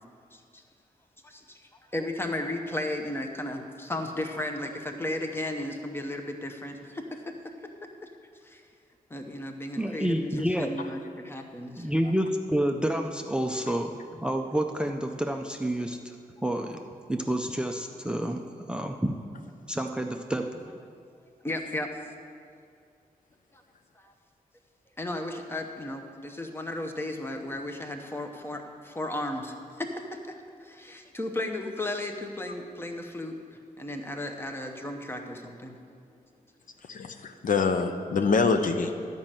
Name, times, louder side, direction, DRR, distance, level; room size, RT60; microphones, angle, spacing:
voice 1, 0.3-0.6 1.2-7.5 8.0-8.1 9.1-11.9 21.4-21.9 23.5-23.6 23.9-24.1 25.0-35.8, left 1 dB, 15° left, 4 dB, 0.8 m, -35 dB
voice 2, 9.8-10.7 11.8-16.2 16.4-16.8 17.1-18.4 18.7-19.2 19.7-20.6, right 1 dB, 5° right, 5 dB, 0.4 m, -29 dB
voice 3, 36.9-38.9, left 4 dB, 60° left, 7 dB, 0.7 m, -25 dB
11.5 x 5.4 x 7.5 m, 2.3 s
wide cardioid pair, 150°, 15 cm